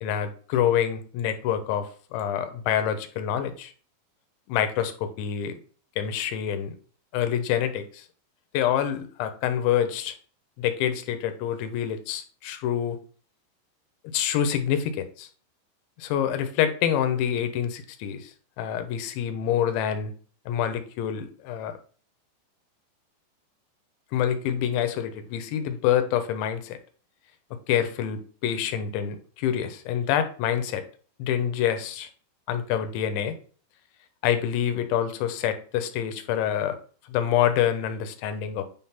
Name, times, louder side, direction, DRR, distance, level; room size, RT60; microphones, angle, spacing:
voice 1, 0.0-3.7 4.5-5.6 6.0-6.7 7.1-8.1 8.5-10.1 10.6-13.0 14.1-15.3 16.0-18.3 18.6-20.1 20.5-21.7 24.1-26.8 27.7-30.8 31.2-32.1 32.5-33.4 34.2-36.8 37.1-38.6, left 9 dB, 80° left, 9 dB, 3.2 m, -26 dB
9.3 x 3.8 x 5.8 m, 0.42 s
omnidirectional pair, 5.4 m